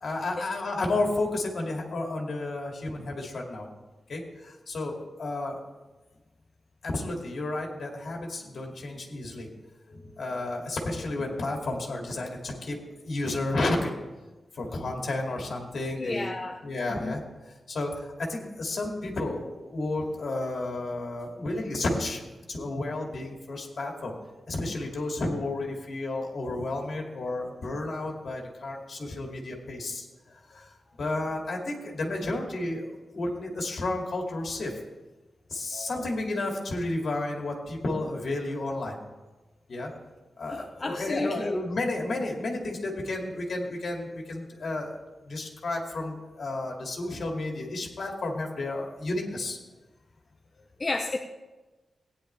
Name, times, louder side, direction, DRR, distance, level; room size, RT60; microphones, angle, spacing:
voice 1, 0.0-3.7 4.1-5.6 6.8-9.5 9.9-12.8 13.0-13.9 14.5-16.3 16.6-17.2 17.7-22.2 22.5-24.2 24.5-34.8 35.5-39.0 39.7-39.9 40.4-44.9 45.3-49.6, left 2 dB, 55° left, 0 dB, 2.2 m, -32 dB
voice 2, 16.0-16.6 16.9-17.2 40.5-41.6 50.8-51.2, left 2 dB, 30° left, 2 dB, 0.6 m, -31 dB
17.0 x 9.9 x 3.3 m, 1.2 s
wide cardioid pair, 170°, 0 cm